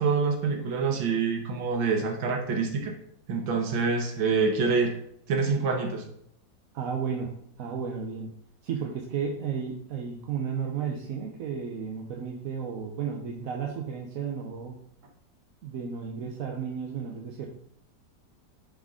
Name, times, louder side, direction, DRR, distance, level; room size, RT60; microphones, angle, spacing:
voice 1, 0.0-2.9 3.3-4.9 5.3-6.0, right 4 dB, 80° right, 2 dB, 1.8 m, -26 dB
voice 2, 6.7-7.3 7.6-8.3 8.6-14.7 15.6-17.5, right 6 dB, 55° right, 1 dB, 1.1 m, -33 dB
10.5 x 3.9 x 3.7 m, 0.72 s
omnidirectional pair, 2.0 m